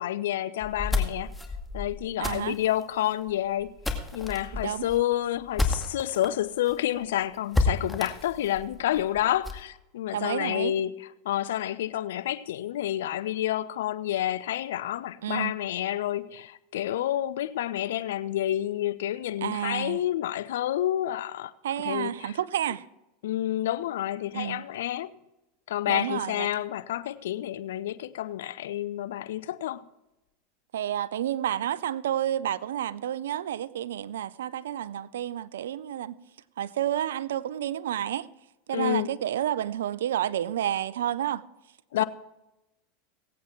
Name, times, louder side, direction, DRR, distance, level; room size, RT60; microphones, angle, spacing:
voice 1, 0.0-1.3 1.7-3.8 4.1-10.9 11.2-21.5 21.8-22.3 23.2-25.1 25.7-29.8 38.7-39.1 41.9-42.0, left 12 dB, 75° left, 0.6 m, -29 dB
sound 1, 0.6-6.3 6.7-6.8 7.0-7.1 7.5-9.7, left 3 dB, 5° left, 2.1 m, -31 dB
voice 2, 2.2-2.6 4.5-4.9 10.1-10.7 15.2-15.5 19.4-20.0 21.6-22.9 24.3-24.6 25.9-26.5 30.7-36.1 36.6-38.3 38.7-41.4 42.0-42.1, right 11 dB, 80° right, 0.5 m, -30 dB
17.5 x 8.4 x 4.5 m
hypercardioid pair, 95°, 0 cm